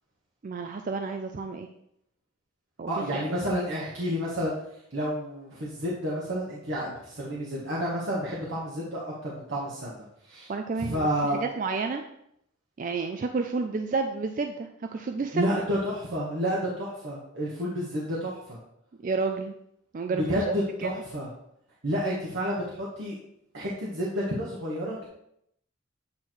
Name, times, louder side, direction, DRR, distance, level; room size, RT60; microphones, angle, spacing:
voice 1, 0.4-1.7 2.8-3.3 10.5-12.0 12.8-15.6 19.0-19.6 19.9-20.9, right 4 dB, 40° right, 5 dB, 0.4 m, -31 dB
voice 2, 2.9-4.5 4.9-10.5 10.8-11.4 15.3-18.6 20.1-21.3 21.8-23.1 23.5-25.1, equal, 65° right, -6 dB, 1.3 m, -30 dB
8.3 x 3.2 x 4.5 m, 0.75 s
head